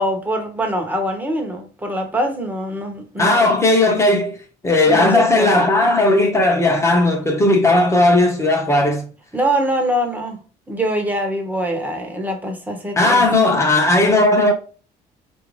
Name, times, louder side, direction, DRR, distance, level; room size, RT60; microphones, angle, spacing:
voice 1, 0.0-3.6 4.9-5.7 9.3-13.2, equal, 10° right, 1.0 m, -24 dB
voice 2, 3.2-4.4 4.6-9.1 13.0-14.5, left 2 dB, 15° left, 0.9 m, -16 dB
4.3 x 2.6 x 3.2 m
cardioid pair, 110°, 17 cm